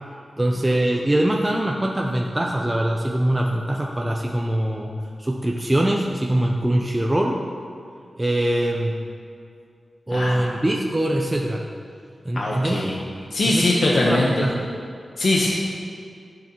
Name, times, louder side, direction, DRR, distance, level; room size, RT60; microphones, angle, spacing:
voice 1, 0.4-4.9 5.2-7.4 8.1-9.0 10.1-11.6 12.2-12.9 13.4-14.6, right 1 dB, 15° right, -1 dB, 0.7 m, -23 dB
voice 2, 10.1-10.5 12.3-13.0 13.3-14.3 15.2-15.5, left 2 dB, 65° left, -3 dB, 1.0 m, -21 dB
15.0 x 6.8 x 3.0 m, 2.3 s
wide cardioid pair, 85°, 0 cm